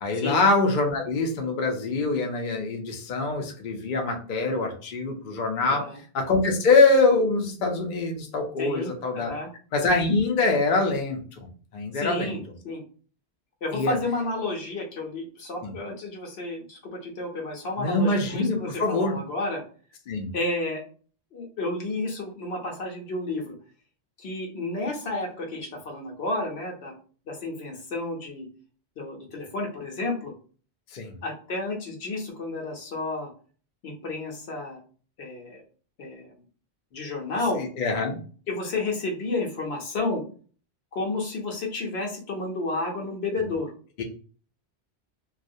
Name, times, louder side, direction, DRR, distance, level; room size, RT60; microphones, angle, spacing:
voice 1, 0.0-5.8 6.1-9.3 9.7-11.5 11.7-12.4 13.7-14.0 15.6-15.7 17.8-19.2 20.1-20.3 30.9-31.2 37.6-38.2 43.4-43.5 44.0-44.1, left 3 dB, 55° left, 2 dB, 0.6 m, -24 dB
voice 2, 8.6-9.5 11.9-12.8 13.6-19.6 20.3-20.8 21.3-23.6 24.2-26.9 27.3-28.5 29.0-30.3 31.2-33.3 33.8-34.8 35.2-35.6 36.0-36.4 36.9-37.6 38.5-40.2 40.9-43.7, left 2 dB, 70° left, 0 dB, 1.0 m, -31 dB
2.4 x 2.0 x 2.6 m, 0.41 s
omnidirectional pair, 1.1 m